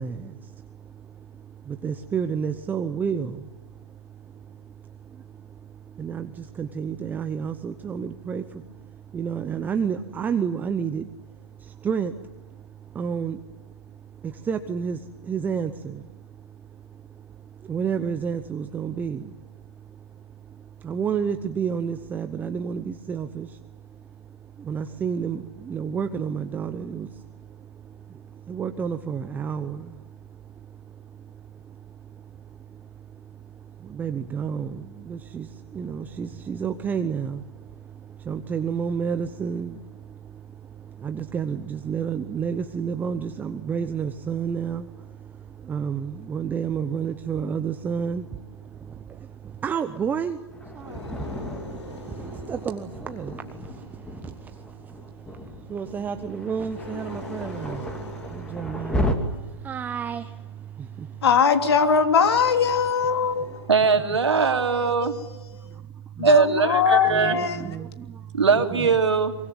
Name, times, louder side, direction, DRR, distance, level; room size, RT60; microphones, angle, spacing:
voice 1, 0.0-61.2 63.5-63.6 66.2-66.3 67.1-68.4, right 7 dB, 10° right, 0.8 m, -32 dB
Thunder, 50.5-59.1, left 1 dB, 5° left, 2.6 m, -34 dB
sound 1, 50.7-54.3 56.7-59.8 62.0-64.7, left 2 dB, 80° left, 5.1 m, -43 dB
voice 2, 61.2-63.4 66.2-67.6, left 6 dB, 60° left, 3.2 m, -20 dB
voice 3, 63.7-65.2 66.2-67.4 68.3-69.3, right 5 dB, 75° right, 2.9 m, -20 dB
24.0 x 23.5 x 9.5 m
figure-of-eight pair, 130°, 15 cm